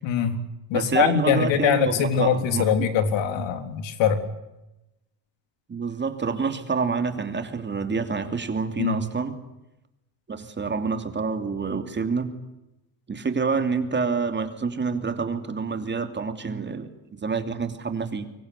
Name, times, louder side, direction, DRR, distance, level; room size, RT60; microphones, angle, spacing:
voice 1, 0.0-0.4 0.7-4.3 8.8-9.0, left 8 dB, 70° left, 9 dB, 3.7 m, -23 dB
voice 2, 0.7-2.9 5.7-9.3 10.3-12.3 13.1-18.2, right 5 dB, 25° right, 8 dB, 2.9 m, -27 dB
25.0 x 23.0 x 8.3 m, 0.94 s
cardioid pair, 130°, 47 cm